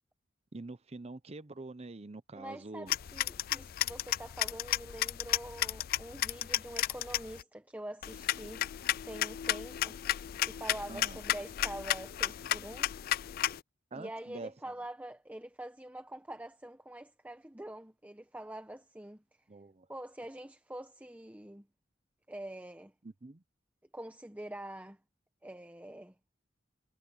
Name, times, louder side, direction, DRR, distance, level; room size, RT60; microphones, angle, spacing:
voice 1, 0.5-2.9 10.9-11.2 13.9-14.5 19.5-19.9 23.0-23.4, right 2 dB, 35° right, 0.7 m, -45 dB
voice 2, 2.3-8.7 9.0-10.0 10.4-12.9 13.9-19.2 19.9-21.7 22.3-22.9 23.9-25.0 25.4-26.1, right 1 dB, 10° right, 1.0 m, -45 dB
sound 1, 2.9-7.4 8.0-13.6, left 13 dB, 50° left, 0.3 m, -33 dB
head